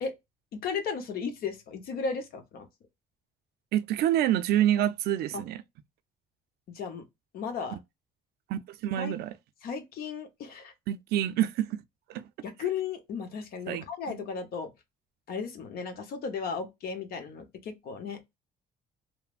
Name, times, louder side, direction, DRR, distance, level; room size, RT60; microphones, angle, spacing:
voice 1, 0.5-2.7 5.3-5.4 6.7-7.0 7.3-7.8 9.0-9.1 9.6-10.7 12.4-14.7 15.3-18.2, left 5 dB, 65° left, 0.9 m, -35 dB
voice 2, 3.7-5.6 8.5-9.3 10.9-11.8 12.1-12.2 13.7-14.2, right 12 dB, 70° right, 0.4 m, -27 dB
3.1 x 2.0 x 2.4 m
cardioid pair, 110°, 17 cm